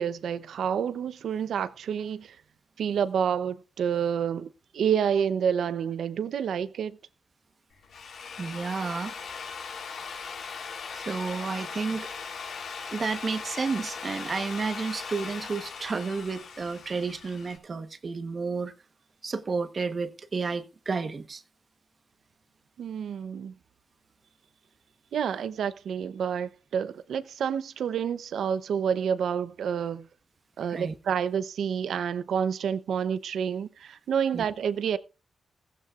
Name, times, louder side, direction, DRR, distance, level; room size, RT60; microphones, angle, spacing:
voice 1, 0.0-2.4 2.8-6.9 22.8-23.5 25.1-30.1 30.6-35.0, right 8 dB, 85° right, 0.7 m, -29 dB
Drill, 7.7-17.6, left 5 dB, 80° left, 3.6 m, -39 dB
voice 2, 8.4-9.1 10.9-12.1 12.9-18.7 19.2-21.4 30.7-31.0 34.3-34.5, right 4 dB, 45° right, 1.1 m, -31 dB
16.0 x 15.5 x 2.5 m
cardioid pair, 105°, 0 cm